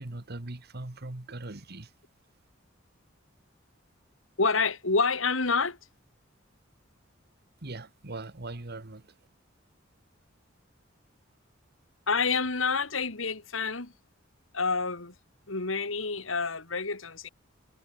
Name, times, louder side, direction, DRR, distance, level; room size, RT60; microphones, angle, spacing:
voice 1, 0.0-1.9 7.6-9.1, right 2 dB, 55° right, 1.6 m, -40 dB
voice 2, 4.4-5.8 12.1-13.9 14.5-15.1 15.5-17.3, left 4 dB, 85° left, 2.6 m, -28 dB
head